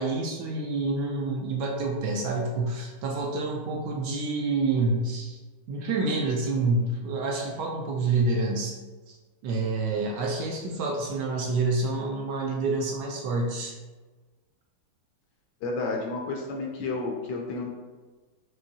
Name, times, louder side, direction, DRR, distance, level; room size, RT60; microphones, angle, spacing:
voice 1, 0.0-5.4 5.7-8.7 9.1-9.2 9.4-13.7, right 3 dB, 70° right, 0 dB, 1.0 m, -28 dB
voice 2, 15.6-17.7, left 3 dB, 70° left, 0 dB, 1.1 m, -31 dB
5.4 x 2.9 x 2.7 m, 1.3 s
omnidirectional pair, 2.1 m